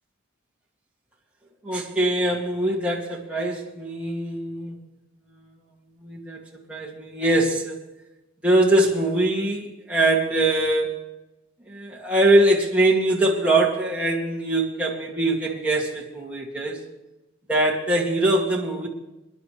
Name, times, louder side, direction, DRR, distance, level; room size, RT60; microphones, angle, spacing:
voice 1, 1.6-4.8 6.0-7.8 8.4-11.1 11.7-16.8 17.5-18.9, right 1 dB, 5° right, -4 dB, 2.2 m, -22 dB
26.0 x 11.0 x 3.2 m, 0.99 s
head